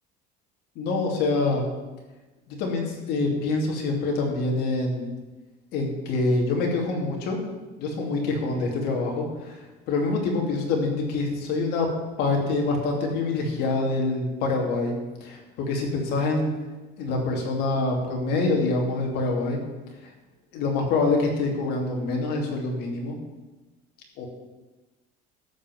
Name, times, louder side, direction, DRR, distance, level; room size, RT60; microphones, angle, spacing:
voice 1, 0.7-1.6 2.5-5.1 5.7-7.4 7.8-9.5 9.9-14.9 15.2-16.5 17.0-19.6 20.5-23.2 24.2-24.3, left 3 dB, 55° left, 0 dB, 2.8 m, -25 dB
12.5 x 5.8 x 7.7 m, 1.2 s
cardioid pair, 170°, 19 cm